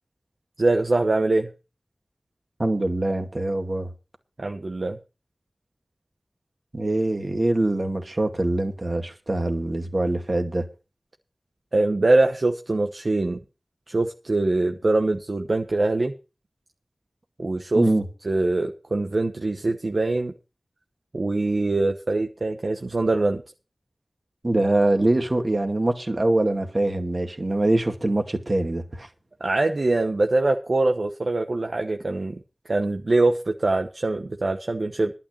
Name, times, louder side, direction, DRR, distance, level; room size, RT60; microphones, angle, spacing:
voice 1, 0.6-1.5 4.4-5.0 11.7-13.4 13.9-16.1 17.4-17.9 18.2-20.3 21.1-23.4 29.4-32.4 32.7-35.1, right 2 dB, 60° right, 1.0 m, -23 dB
voice 2, 2.6-3.9 6.7-10.6 17.8-18.0 24.4-29.1, right 2 dB, 40° right, 2.2 m, -23 dB
11.5 x 5.8 x 8.9 m
wide cardioid pair, 70°, 0 cm